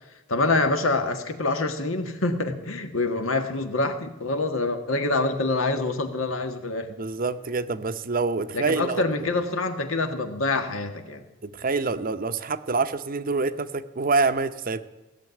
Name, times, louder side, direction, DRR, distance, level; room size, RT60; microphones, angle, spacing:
voice 1, 0.3-6.9 8.5-11.2, left 2 dB, 80° left, 7 dB, 1.6 m, -26 dB
voice 2, 7.0-9.0 11.4-14.8, right 4 dB, 45° right, 12 dB, 0.7 m, -26 dB
17.0 x 7.5 x 9.7 m, 1.1 s
head